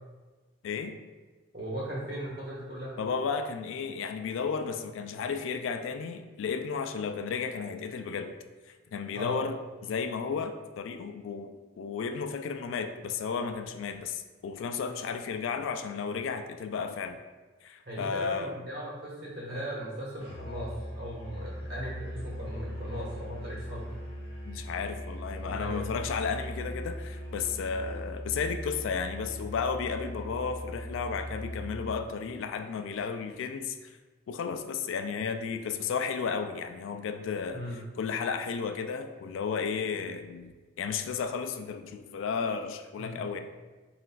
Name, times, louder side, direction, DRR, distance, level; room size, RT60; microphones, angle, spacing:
voice 1, 1.5-3.0 9.1-9.4 17.8-23.9 25.4-25.9 37.5-37.8 43.0-43.2, equal, 50° right, -6 dB, 1.1 m, -38 dB
voice 2, 3.0-8.4 8.9-17.2 17.6-18.5 24.4-34.0 34.3-37.6 38.0-40.5 40.8-43.4, left 5 dB, 75° left, 7 dB, 0.3 m, -33 dB
Musical instrument, 20.2-32.1, equal, 30° left, 0.6 m, -39 dB
5.6 x 2.5 x 2.2 m, 1.3 s
head